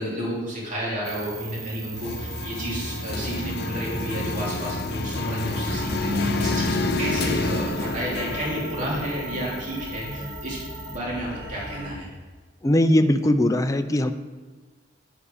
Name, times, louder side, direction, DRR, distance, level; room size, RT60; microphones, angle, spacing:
voice 1, 0.0-10.6 10.9-12.1, equal, 45° right, -5 dB, 2.6 m, -31 dB
sound 1, 1.0-11.0, right 5 dB, 20° right, 0.8 m, -42 dB
sound 2, 2.0-9.9, left 2 dB, 60° left, 0.8 m, -29 dB
sound 3, 5.7-11.9, left 2 dB, 80° right, 1.7 m, -33 dB
voice 2, 12.6-14.1, left 1 dB, 20° left, 8 dB, 0.4 m, -20 dB
9.9 x 7.0 x 5.1 m, 1.4 s
head